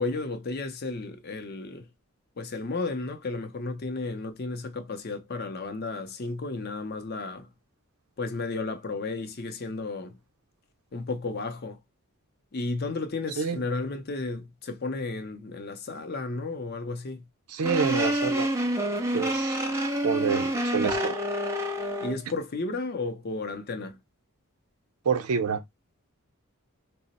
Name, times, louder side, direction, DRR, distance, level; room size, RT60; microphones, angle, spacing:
voice 1, 0.0-1.9 2.4-7.5 8.2-10.2 10.9-11.8 12.5-17.2 22.0-24.0, left 3 dB, 45° left, 0.5 m, -33 dB
voice 2, 17.5-18.5 19.1-19.6 20.0-21.2 25.0-25.6, right 6 dB, 85° right, 0.5 m, -27 dB
sound 1, 17.6-22.2, equal, 10° right, 0.6 m, -27 dB
2.8 x 2.0 x 4.0 m
head